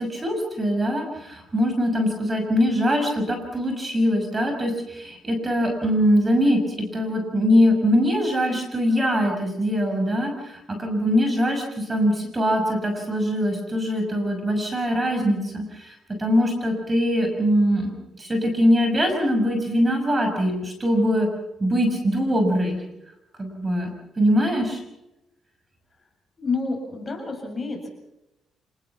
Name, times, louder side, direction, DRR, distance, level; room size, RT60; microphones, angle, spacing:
voice 1, 0.0-21.3 21.6-22.8 23.4-23.9 24.2-24.8, equal, 25° right, 4 dB, 6.1 m, -22 dB
voice 2, 26.4-27.9, left 3 dB, 30° left, 2 dB, 7.4 m, -29 dB
27.5 x 19.5 x 5.9 m, 0.93 s
cardioid pair, 90°, 0 cm